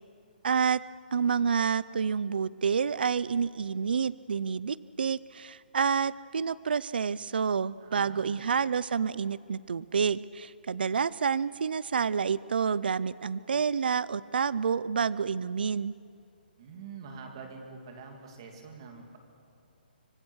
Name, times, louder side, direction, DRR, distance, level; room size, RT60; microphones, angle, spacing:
voice 1, 0.4-0.8 1.1-15.9, right 6 dB, 70° right, 19 dB, 0.5 m, -28 dB
voice 2, 7.8-8.5 16.6-19.2, right 5 dB, 30° right, 3 dB, 2.8 m, -46 dB
25.0 x 24.0 x 6.3 m, 2.4 s
hypercardioid pair, 175°, 5 cm